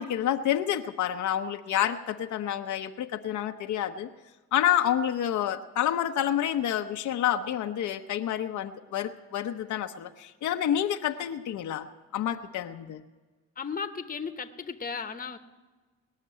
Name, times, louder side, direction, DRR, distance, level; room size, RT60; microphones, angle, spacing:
voice 1, 0.0-4.1 4.5-11.9 12.1-13.0, left 10 dB, 75° left, 6 dB, 0.8 m, -28 dB
voice 2, 13.6-15.4, left 5 dB, 30° left, 7 dB, 1.0 m, -35 dB
19.5 x 6.6 x 9.2 m, 1.3 s
cardioid pair, 90°, 30 cm